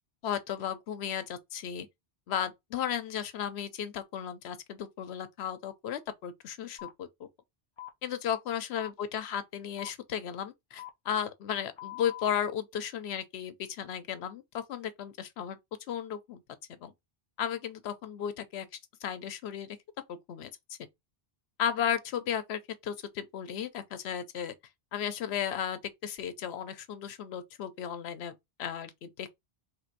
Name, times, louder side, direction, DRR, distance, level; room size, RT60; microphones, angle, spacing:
voice 1, 0.2-1.9 2.3-7.3 8.0-15.6 15.9-16.4 16.8-16.9 17.4-18.7 19.0-19.8 20.1-20.8 21.6-24.5 24.9-28.3 28.6-29.3, left 9 dB, 85° left, 0.9 m, -35 dB
sound 1, 6.8-6.9 7.8-7.9 8.8-8.9 9.8-9.9 10.8-10.9 11.8-12.3, left 14 dB, 50° left, 0.3 m, -42 dB
3.3 x 2.5 x 4.4 m
omnidirectional pair, 1.1 m